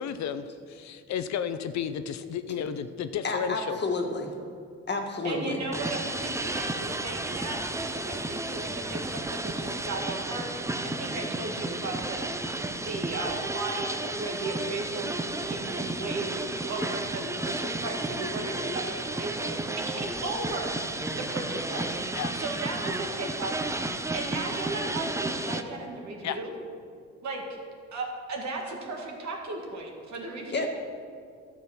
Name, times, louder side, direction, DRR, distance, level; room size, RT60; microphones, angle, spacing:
voice 1, 0.0-3.8 22.1-22.3 26.2-26.4, left 8 dB, 65° left, 10 dB, 0.6 m, -32 dB
voice 2, 3.2-4.3 4.9-5.6 30.5-30.7, left 3 dB, 35° left, 3 dB, 1.5 m, -30 dB
voice 3, 5.2-12.3 12.8-16.3 16.6-20.7 21.2-22.0 22.3-23.7 24.1-26.5 27.2-27.4 27.9-30.7, right 2 dB, 65° right, 0 dB, 2.2 m, -36 dB
sound 1, 5.7-25.6, right 2 dB, 10° right, 0.6 m, -32 dB
12.0 x 7.4 x 6.1 m, 2.3 s
cardioid pair, 90°, 30 cm